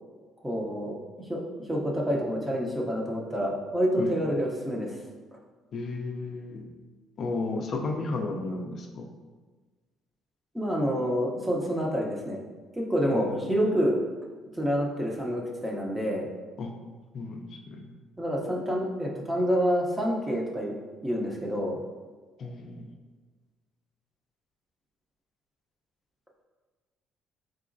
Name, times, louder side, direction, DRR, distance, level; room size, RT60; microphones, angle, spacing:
voice 1, 0.4-1.4 1.7-5.0 10.5-12.4 12.7-14.0 14.6-16.3 18.2-20.7 21.0-21.8, equal, 5° right, -1 dB, 0.6 m, -28 dB
voice 2, 5.7-6.7 7.2-9.1 13.1-13.5 16.6-16.7 17.1-17.9 22.4-22.9, left 3 dB, 50° left, 1 dB, 0.4 m, -33 dB
4.1 x 3.8 x 2.5 m, 1.4 s
cardioid pair, 140°, 0 cm